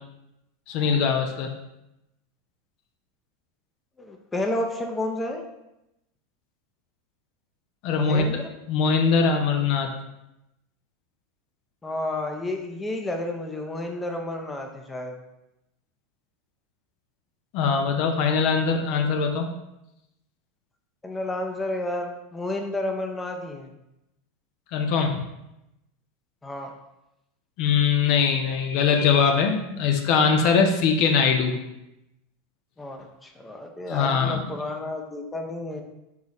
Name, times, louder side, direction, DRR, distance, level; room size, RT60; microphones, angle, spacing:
voice 1, 0.7-1.5 7.8-8.2 8.7-9.9 17.5-19.5 24.7-25.2 27.6-31.5 33.9-34.4, left 5 dB, 60° left, 4 dB, 0.5 m, -22 dB
voice 2, 4.0-5.4 7.9-8.5 11.8-15.2 21.0-23.7 26.4-26.7 32.8-35.8, left 1 dB, 15° left, 3 dB, 0.6 m, -31 dB
4.0 x 3.9 x 3.0 m, 0.89 s
hypercardioid pair, 95°, 0 cm